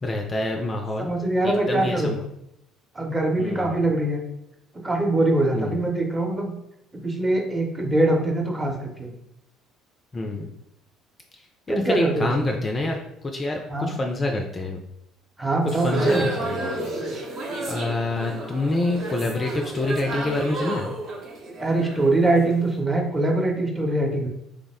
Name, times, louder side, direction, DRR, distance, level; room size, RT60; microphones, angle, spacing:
voice 1, 0.0-1.1 1.4-2.2 3.4-3.8 5.5-5.8 10.1-10.5 11.7-13.0 13.2-14.8 15.7-16.8 17.7-20.9, left 2 dB, 25° left, 3 dB, 0.3 m, -27 dB
voice 2, 1.0-2.2 2.9-4.2 4.7-6.5 7.0-9.1 11.7-12.5 13.7-14.0 15.4-16.3 21.6-24.3, right 2 dB, 15° right, 0 dB, 0.7 m, -23 dB
sound 1, 15.6-22.6, right 2 dB, 50° right, 0.7 m, -31 dB
3.4 x 2.0 x 3.4 m, 0.80 s
figure-of-eight pair, 55°, 0 cm